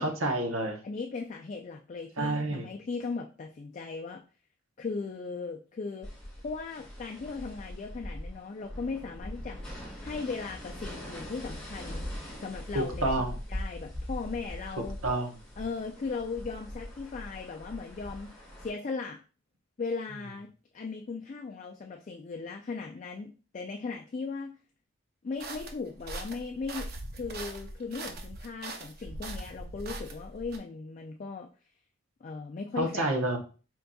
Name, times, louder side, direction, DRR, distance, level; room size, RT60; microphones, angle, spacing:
voice 1, 0.0-0.8 2.2-2.7 12.7-13.4 15.0-15.3 32.8-33.4, right 1 dB, 85° right, 3 dB, 0.9 m, -29 dB
voice 2, 0.8-4.2 4.8-6.1 6.4-9.6 10.0-12.1 12.4-13.1 13.5-15.0 15.6-18.3 18.6-19.2 19.8-24.5 25.2-26.9 27.1-31.5 32.2-33.2, left 4 dB, 35° left, 2 dB, 0.3 m, -37 dB
sound 1, 6.0-18.7, left 1 dB, 5° left, 1.9 m, -41 dB
sound 2, 25.4-30.6, right 2 dB, 50° right, 0.6 m, -41 dB
4.5 x 3.9 x 2.3 m, 0.35 s
head